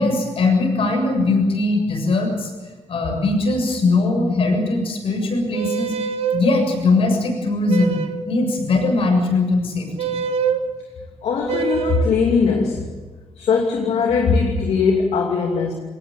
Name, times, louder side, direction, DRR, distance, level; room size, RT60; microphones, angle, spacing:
voice 1, 0.0-2.5 2.9-10.2, left 2 dB, 60° left, 3 dB, 7.1 m, -20 dB
sound 1, 5.5-6.5 7.7-8.3 10.0-10.6 11.5-12.1, right 6 dB, 65° right, 1.5 m, -24 dB
voice 2, 11.2-12.9 13.4-15.7, left 5 dB, 75° left, 1 dB, 2.7 m, -20 dB
22.0 x 19.0 x 9.1 m, 1.3 s
cardioid pair, 120°, 11 cm